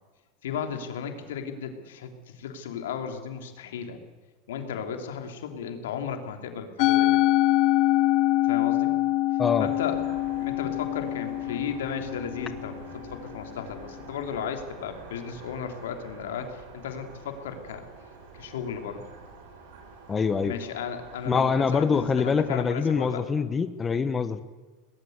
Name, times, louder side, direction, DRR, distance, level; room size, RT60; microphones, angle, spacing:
voice 1, 0.4-4.0 4.5-7.2 8.4-8.9 9.6-10.0 10.4-17.8 18.3-19.0 20.4-23.2, left 7 dB, 85° left, 5 dB, 3.4 m, -35 dB
Musical instrument, 6.8-13.2, left 16 dB, 55° left, 0.9 m, -24 dB
sound 1, 9.6-22.5, right 4 dB, 75° right, 7.4 m, -47 dB
voice 2, 20.1-20.5 21.2-24.4, left 5 dB, 20° left, 11 dB, 1.1 m, -24 dB
22.5 x 19.5 x 8.2 m, 1.3 s
supercardioid pair, 120°, 0 cm